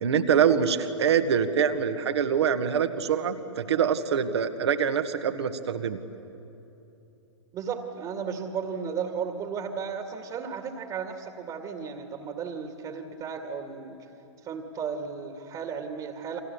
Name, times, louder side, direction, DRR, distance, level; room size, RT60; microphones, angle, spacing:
voice 1, 0.0-6.0, right 7 dB, 60° right, 9 dB, 1.7 m, -24 dB
voice 2, 7.5-14.1 14.4-16.4, right 6 dB, 25° right, 5 dB, 2.1 m, -34 dB
29.0 x 25.5 x 7.1 m, 2.9 s
figure-of-eight pair, 110°, 16 cm